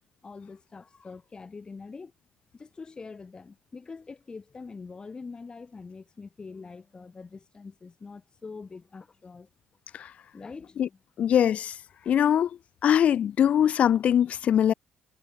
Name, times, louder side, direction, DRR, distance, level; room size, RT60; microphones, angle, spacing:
voice 1, 0.2-2.1 2.5-9.5 10.3-11.0, left 4 dB, 35° left, 4.8 m, -44 dB
voice 2, 11.2-11.7 12.1-12.5 12.8-14.7, left 9 dB, 55° left, 1.4 m, -22 dB
hypercardioid pair, 55°, 3 cm